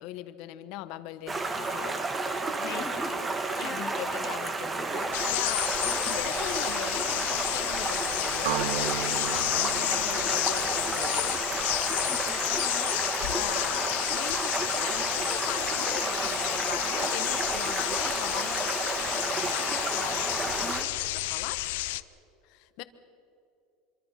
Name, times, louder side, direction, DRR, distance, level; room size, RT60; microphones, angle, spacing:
voice 1, 0.0-2.0 2.6-2.9 3.6-5.7 6.1-11.4 13.3-20.7 21.1-21.6 22.4-22.8, left 14 dB, 55° left, 12 dB, 1.2 m, -40 dB
Stream, 1.3-20.8, right 3 dB, 15° right, 1.6 m, -31 dB
voice 2, 2.8-3.2 3.6-4.0 12.0-13.3 20.6-20.9, left 1 dB, 5° left, 4 dB, 1.9 m, -42 dB
sound 1, 5.1-22.0, left 19 dB, 75° left, 0.6 m, -31 dB
sound 2, 8.4-12.4, right 11 dB, 80° right, 1.1 m, -37 dB
26.0 x 23.5 x 5.9 m, 2.8 s
cardioid pair, 160°, 0 cm